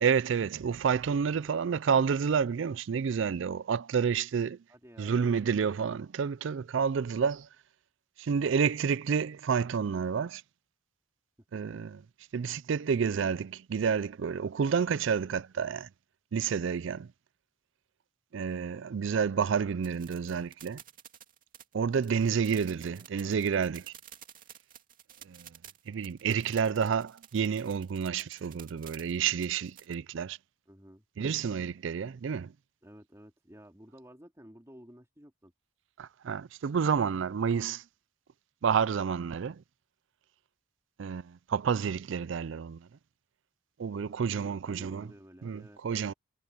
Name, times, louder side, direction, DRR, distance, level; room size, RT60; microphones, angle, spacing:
voice 1, 0.0-4.6 5.0-7.5 8.2-10.4 11.5-12.0 12.3-15.9 16.3-17.1 18.3-20.8 21.7-23.9 25.3-25.5 25.9-30.4 31.2-32.5 36.0-37.8 38.6-39.6 41.0-42.9 43.8-45.1 45.4-46.1, right 6 dB, 65° right, 0.4 m, -29 dB
voice 2, 1.3-1.7 4.7-5.2 22.7-23.1 30.7-31.0 32.8-35.5 44.0-46.1, equal, 15° right, 3.1 m, -53 dB
sound 1, 19.8-29.9, right 10 dB, 40° right, 2.6 m, -52 dB
head